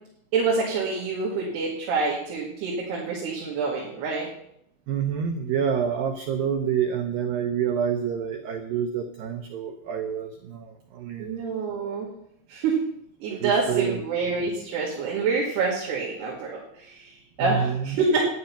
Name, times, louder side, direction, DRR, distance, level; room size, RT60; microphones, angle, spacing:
voice 1, 0.3-4.3 11.2-12.1 12.5-12.8 13.2-18.3, right 4 dB, 65° right, -4 dB, 4.1 m, -27 dB
voice 2, 4.9-11.4 13.3-14.0 17.4-18.0, right 8 dB, 80° right, 5 dB, 2.0 m, -28 dB
13.0 x 10.5 x 5.8 m, 0.73 s
omnidirectional pair, 5.3 m